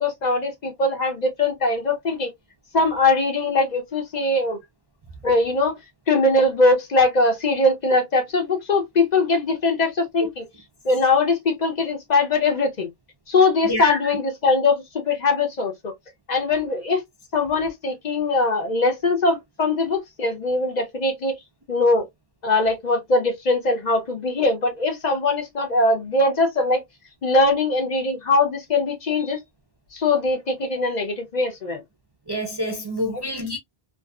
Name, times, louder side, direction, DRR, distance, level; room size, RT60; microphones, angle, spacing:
voice 1, 0.0-2.3 2.7-4.6 5.2-5.8 6.1-10.4 10.8-12.9 13.3-15.9 16.3-17.0 17.3-21.4 21.7-22.1 22.4-26.8 27.2-29.4 29.9-31.8, left 2 dB, 50° left, 0.7 m, -21 dB
voice 2, 13.6-14.0 32.3-33.6, left 1 dB, 35° right, 0.4 m, -27 dB
2.6 x 2.4 x 2.3 m
omnidirectional pair, 1.0 m